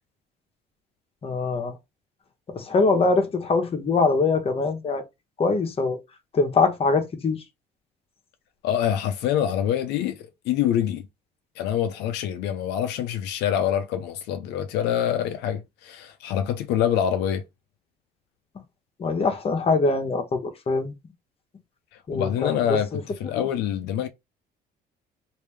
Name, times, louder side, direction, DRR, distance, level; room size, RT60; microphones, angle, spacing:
voice 1, 1.2-1.7 2.5-5.0 5.4-6.0 6.3-7.4 19.0-20.9 22.1-23.0 23.3-23.5, left 3 dB, 35° left, 1.0 m, -23 dB
voice 2, 8.6-11.0 11.6-17.4 22.1-24.1, left 10 dB, 90° left, 0.5 m, -25 dB
3.2 x 2.7 x 3.3 m
cardioid pair, 110°, 17 cm